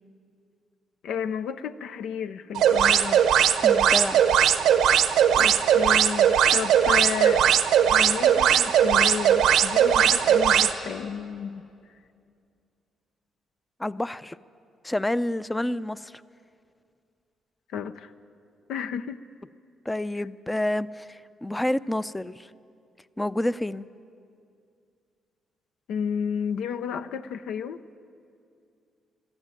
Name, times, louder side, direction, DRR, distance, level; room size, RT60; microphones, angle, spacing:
voice 1, 1.0-3.2 5.4-7.4 7.9-11.7 17.7-18.1 18.7-19.2 25.9-27.8, left 7 dB, 80° left, 10 dB, 0.7 m, -32 dB
sound 1, 2.6-10.7, right 9 dB, 85° right, 0.9 m, -19 dB
voice 2, 3.6-4.2 13.8-14.4 14.8-16.1 19.9-22.5 23.2-23.9, left 1 dB, 10° left, 16 dB, 0.5 m, -28 dB
21.5 x 14.0 x 9.1 m, 2.4 s
cardioid pair, 90°, 0 cm